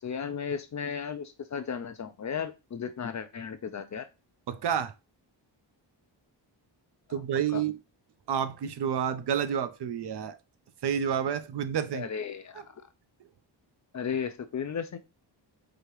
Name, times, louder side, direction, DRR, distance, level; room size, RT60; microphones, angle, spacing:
voice 1, 0.0-4.1 7.5-7.6 11.9-12.8 13.9-15.0, left 7 dB, 40° left, 0.4 m, -35 dB
voice 2, 4.5-4.9 7.1-7.7 8.3-10.4 10.8-12.1, right 8 dB, 65° right, 0.6 m, -29 dB
4.9 x 2.8 x 3.0 m
wide cardioid pair, 145°, 44 cm